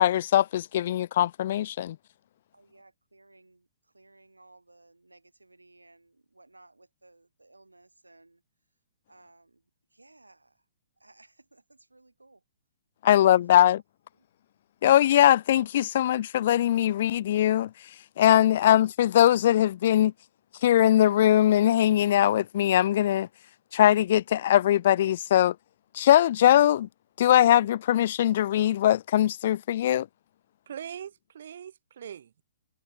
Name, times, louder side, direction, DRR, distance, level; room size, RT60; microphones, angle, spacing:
voice 1, 0.0-2.0 13.0-13.8 14.8-17.7 18.2-20.1 20.6-23.3 23.7-25.5 25.9-26.9 27.2-30.1, left 12 dB, 50° left, 0.4 m, -21 dB
voice 2, 2.5-8.4 9.1-9.6 9.9-10.6 11.0-12.4 13.1-13.4 14.1-14.2 18.6-18.9, right 2 dB, 85° right, 5.9 m, -58 dB
voice 3, 30.7-32.4, right 9 dB, 60° right, 7.1 m, -41 dB
figure-of-eight pair, 120°, 0 cm